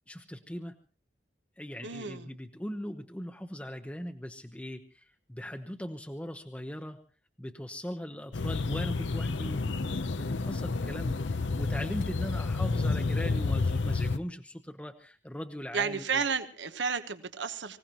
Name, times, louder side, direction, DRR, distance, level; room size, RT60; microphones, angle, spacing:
voice 1, 0.1-0.7 1.6-7.0 7.4-16.2, equal, 5° left, 5 dB, 0.8 m, -40 dB
voice 2, 1.8-2.3 15.7-17.8, right 6 dB, 75° right, 10 dB, 1.1 m, -32 dB
sound 1, 8.3-14.2, left 3 dB, 80° left, 0.7 m, -30 dB
25.0 x 16.5 x 3.0 m, 0.37 s
head